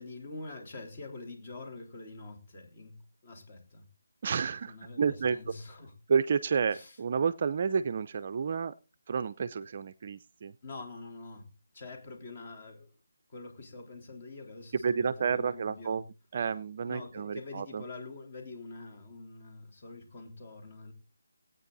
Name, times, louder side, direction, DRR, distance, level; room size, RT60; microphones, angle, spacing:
voice 1, 0.0-3.9 4.7-5.9 6.7-7.0 10.6-12.9 13.3-16.0 16.8-20.9, left 3 dB, 30° left, 3.8 m, -45 dB
voice 2, 4.2-5.4 6.1-8.7 9.1-10.5 14.8-16.0 16.3-17.8, right 6 dB, 35° right, 0.5 m, -30 dB
18.0 x 9.0 x 4.0 m
figure-of-eight pair, 170°, 0 cm